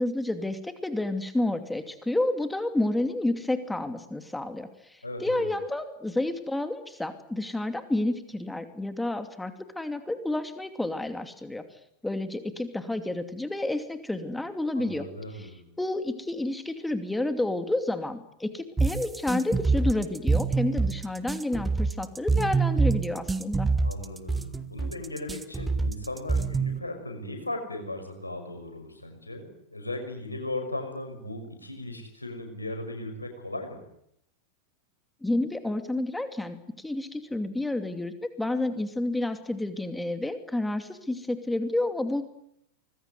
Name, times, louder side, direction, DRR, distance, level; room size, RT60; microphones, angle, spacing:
voice 1, 0.0-11.6 12.0-15.1 15.3-15.5 15.8-23.7 35.2-42.2, left 2 dB, 5° left, 9 dB, 2.6 m, -30 dB
voice 2, 5.0-5.5 14.7-15.7 23.8-33.8, left 1 dB, 85° left, 5 dB, 5.9 m, -37 dB
sound 1, 18.8-26.8, right 4 dB, 10° right, 1.4 m, -25 dB
25.0 x 21.0 x 9.7 m, 0.74 s
figure-of-eight pair, 90°, 0 cm